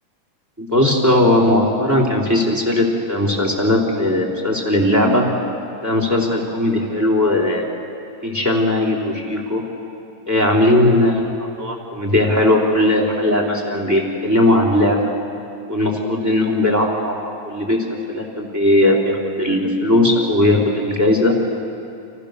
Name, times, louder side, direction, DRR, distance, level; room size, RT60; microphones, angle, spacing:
voice 1, 0.6-5.3 5.8-7.8 8.2-9.6 10.3-15.0 15.7-17.8 18.1-21.4, left 1 dB, 5° right, -2 dB, 3.7 m, -18 dB
30.0 x 28.5 x 6.9 m, 2.6 s
omnidirectional pair, 4.4 m